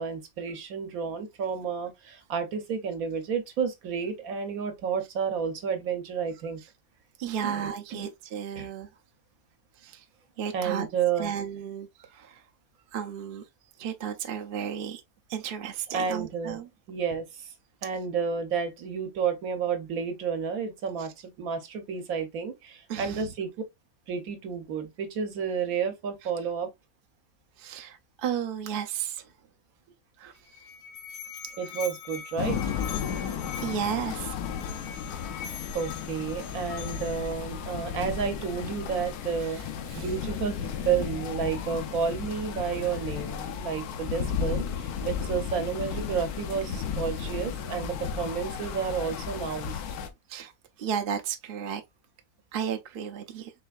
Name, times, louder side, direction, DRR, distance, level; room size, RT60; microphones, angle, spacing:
voice 1, 0.0-6.6 7.4-8.1 8.6-8.7 10.5-11.3 15.9-16.6 16.9-17.5 17.8-23.5 24.1-26.7 31.6-32.6 35.7-39.6 39.9-40.6 40.8-49.8, right 6 dB, 70° right, 1.2 m, -31 dB
voice 2, 7.2-8.9 9.8-10.0 10.4-10.9 11.2-12.4 12.9-13.4 13.8-15.0 15.3-16.7 21.0-21.1 22.9-23.3 26.2-26.3 27.6-29.3 30.2-30.6 33.1-33.3 33.6-34.4 39.4-40.1 42.1-42.2 50.3-50.5 50.8-51.8 52.5-53.5, right 8 dB, 55° right, 0.6 m, -34 dB
Musical instrument, 30.4-37.3, left 8 dB, 60° left, 1.1 m, -42 dB
sound 1, 32.4-50.1, left 7 dB, 80° left, 1.2 m, -34 dB
4.6 x 3.3 x 2.3 m
omnidirectional pair, 1.6 m